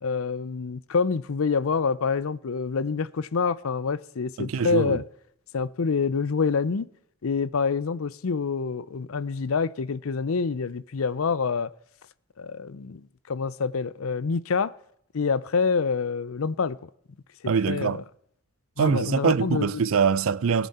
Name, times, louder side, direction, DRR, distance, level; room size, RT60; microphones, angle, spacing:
voice 1, 0.0-5.0 5.5-6.9 7.2-11.7 12.4-13.0 13.3-14.7 15.1-16.9 17.4-18.0 18.8-19.7, left 5 dB, 75° left, 0.6 m, -26 dB
voice 2, 4.4-5.0 17.5-18.0 18.8-20.7, right 6 dB, 70° right, 0.4 m, -24 dB
19.0 x 10.0 x 4.3 m
head